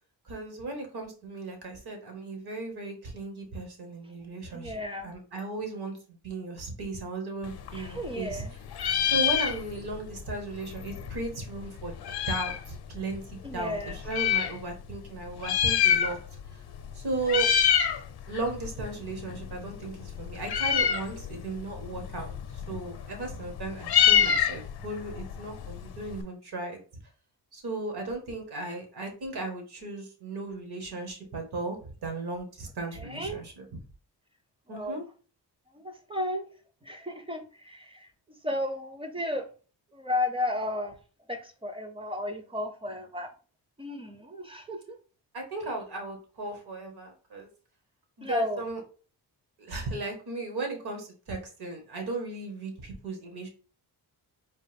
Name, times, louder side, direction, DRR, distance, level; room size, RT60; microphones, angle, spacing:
voice 1, 0.2-6.0 6.2-8.4 9.1-12.0 12.3-16.2 16.5-16.6 16.9-17.5 18.3-26.8 27.5-33.6 34.7-35.0 45.3-47.5 48.2-48.8 49.6-53.5, right 3 dB, 65° right, 3 dB, 1.4 m, -36 dB
voice 2, 4.5-5.1 7.7-8.5 13.4-14.0 33.0-33.4 34.7-35.0 35.7-36.5 36.8-38.1 38.4-39.5 39.9-41.0 41.3-43.3 43.8-45.0 48.2-48.6, left 1 dB, 15° right, 7 dB, 0.5 m, -33 dB
Meow, 7.5-8.5 8.7-10.0 10.3-10.4 10.6-12.7 13.3-14.5 15.3-16.5 16.7-17.0 17.2-18.0 18.4-26.2, left 9 dB, 65° left, 0.6 m, -26 dB
4.3 x 2.6 x 3.4 m, 0.38 s
wide cardioid pair, 150°, 41 cm